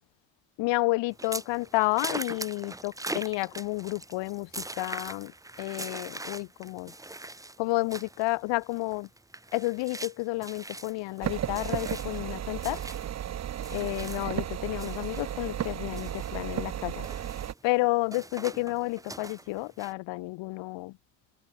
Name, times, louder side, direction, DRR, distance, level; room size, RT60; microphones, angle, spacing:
voice 1, 0.6-6.9 7.6-9.1 9.5-12.8 13.7-17.1 17.6-21.0, left 22 dB, 85° left, 1.7 m, -31 dB
sound 1, 1.1-14.5 14.8-19.9, right 2 dB, 10° right, 1.3 m, -42 dB
sound 2, 11.2-17.5, right 11 dB, 40° right, 0.8 m, -34 dB
open air
cardioid pair, 110°, 43 cm